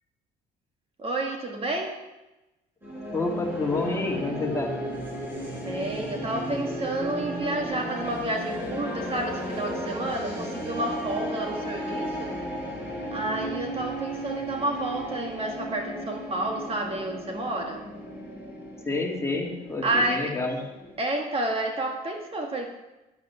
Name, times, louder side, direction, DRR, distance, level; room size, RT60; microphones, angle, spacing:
voice 1, 1.0-2.0 5.6-12.4 13.1-17.8 19.8-20.3 21.0-22.7, right 2 dB, 35° right, 2 dB, 1.7 m, -30 dB
sound 1, 2.8-21.0, equal, 10° right, 4.6 m, -35 dB
voice 2, 3.1-4.7 18.8-20.6, left 3 dB, 15° left, -1 dB, 2.5 m, -28 dB
11.5 x 9.4 x 6.2 m, 1.0 s
cardioid pair, 110°, 17 cm